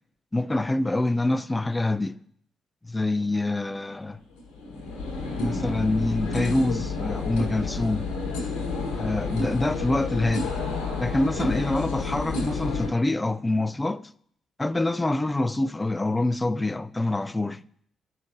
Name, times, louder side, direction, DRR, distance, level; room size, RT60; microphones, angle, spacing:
voice 1, 0.3-2.2 2.9-4.2 5.4-8.1 9.0-10.5 11.0-14.0 14.6-17.6, left 2 dB, 20° left, 0.4 m, -26 dB
sound 1, 4.1-12.9, left 3 dB, 75° left, 1.1 m, -30 dB
12.0 x 5.1 x 2.5 m
hypercardioid pair, 40°, 0 cm